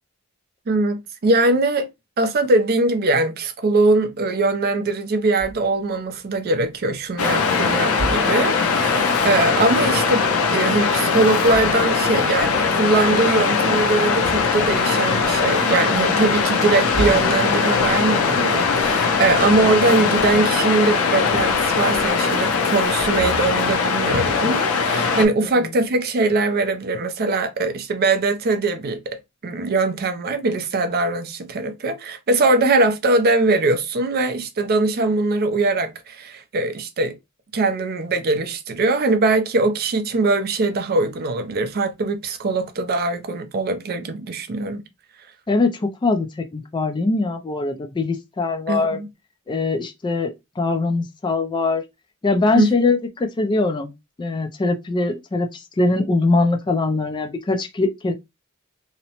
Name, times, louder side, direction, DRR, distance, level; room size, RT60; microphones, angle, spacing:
voice 1, 0.7-1.9 2.2-37.1 37.5-44.8 48.7-49.1 52.5-52.7, right 2 dB, 45° right, 0.4 m, -21 dB
sound 1, 5.4-5.9 6.6-7.2 7.9-8.7 11.3-12.1 12.4-12.9 13.7-18.3 18.7-19.9 20.2-20.7 20.9-22.5 22.8-23.9, right 1 dB, 55° left, 1.5 m, -35 dB
Waves surf, 7.2-25.3, left 5 dB, 80° left, 0.5 m, -20 dB
voice 2, 45.5-49.0 49.5-51.8 52.2-53.9 54.2-58.1, left 3 dB, 20° left, 0.3 m, -22 dB
2.7 x 2.0 x 2.8 m
head